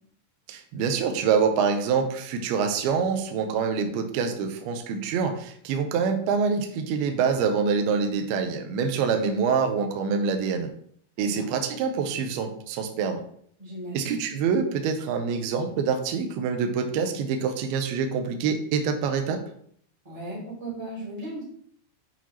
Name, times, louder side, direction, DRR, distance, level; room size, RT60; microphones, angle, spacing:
voice 1, 0.5-10.7 11.2-13.2 13.9-19.4, right 6 dB, 80° right, 5 dB, 2.4 m, -26 dB
voice 2, 11.2-11.5 13.6-14.2 20.0-21.4, right 2 dB, 10° right, -6 dB, 2.1 m, -36 dB
8.2 x 4.5 x 2.9 m, 0.64 s
omnidirectional pair, 4.9 m